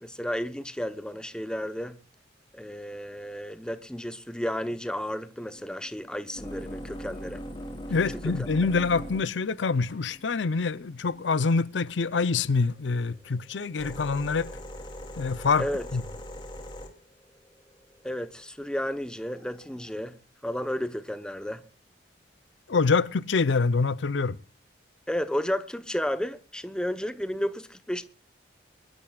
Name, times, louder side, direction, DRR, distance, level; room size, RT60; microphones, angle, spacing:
voice 1, 0.0-2.0 2.5-7.4 15.6-15.9 18.0-20.2 20.4-21.6 25.1-28.1, equal, 5° left, 0.9 m, -32 dB
sound 1, 5.5-11.8 12.6-18.4 19.4-19.9, equal, 25° left, 2.9 m, -41 dB
voice 2, 7.9-14.5 15.2-15.7 15.9-16.0 22.7-24.4, left 4 dB, 85° left, 0.6 m, -25 dB
24.0 x 12.5 x 2.4 m
head